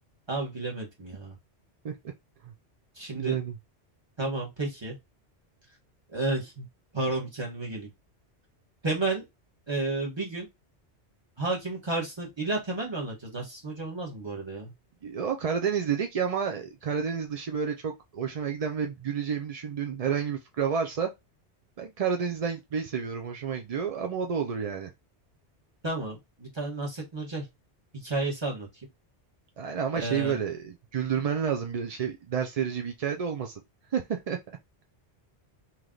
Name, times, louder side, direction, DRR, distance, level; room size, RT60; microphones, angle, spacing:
voice 1, 0.3-1.4 2.9-3.4 4.2-4.9 6.1-6.7 6.9-7.9 8.8-9.2 9.7-10.5 11.4-14.7 25.8-27.4 28.0-28.7 29.9-30.4, right 2 dB, 25° right, 1.4 m, -31 dB
voice 2, 3.1-3.6 15.0-21.1 21.8-24.9 29.6-33.6 33.9-34.4, right 7 dB, 50° right, 0.4 m, -30 dB
3.2 x 2.9 x 3.8 m
omnidirectional pair, 1.2 m